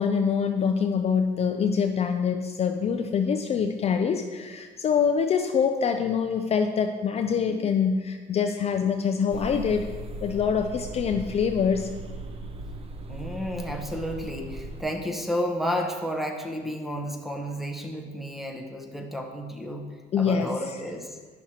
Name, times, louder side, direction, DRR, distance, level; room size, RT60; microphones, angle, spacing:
voice 1, 0.0-9.9 10.2-11.9 20.1-20.8, left 6 dB, 40° left, 6 dB, 0.4 m, -25 dB
sound 1, 9.3-14.8, right 2 dB, 35° right, 0.6 m, -38 dB
voice 2, 13.1-19.9 20.2-21.2, equal, ahead, 3 dB, 0.9 m, -32 dB
10.0 x 6.0 x 2.9 m, 1.5 s
cardioid pair, 110°, 17 cm